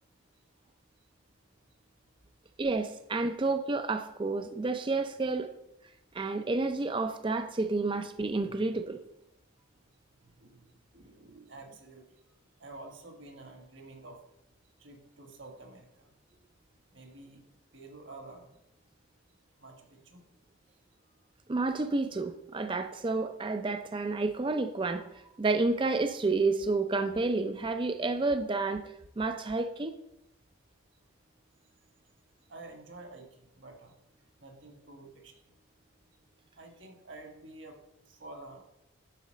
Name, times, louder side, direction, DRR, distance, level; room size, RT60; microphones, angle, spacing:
voice 1, 2.6-5.5 6.1-9.0 21.5-28.8 29.2-29.9, right 3 dB, 25° right, 8 dB, 0.4 m, -30 dB
voice 2, 10.2-12.1 12.6-14.2 14.8-16.1 16.9-17.4 17.7-18.5 19.6-20.2 21.0-21.1 32.5-34.0 34.4-35.4 36.6-37.8 38.1-38.6, right 2 dB, 60° right, 3 dB, 1.5 m, -49 dB
9.8 x 4.0 x 6.3 m, 0.86 s
head